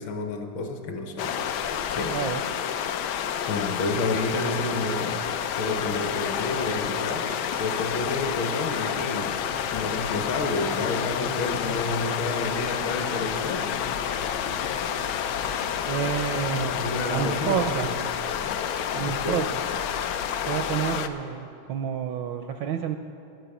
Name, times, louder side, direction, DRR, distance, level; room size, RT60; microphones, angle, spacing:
voice 1, 0.0-1.4 1.9-2.2 3.5-5.2 5.5-9.4 9.7-13.7 16.7-18.0 19.0-19.4, left 2 dB, 70° left, 5 dB, 1.6 m, -30 dB
sound 1, 1.2-21.1, left 8 dB, 85° left, 0.9 m, -29 dB
voice 2, 2.1-2.4 15.8-16.7 17.1-17.9 18.9-19.6 20.5-23.0, right 8 dB, 75° right, 6 dB, 1.1 m, -29 dB
10.0 x 9.3 x 7.0 m, 2.5 s
omnidirectional pair, 2.4 m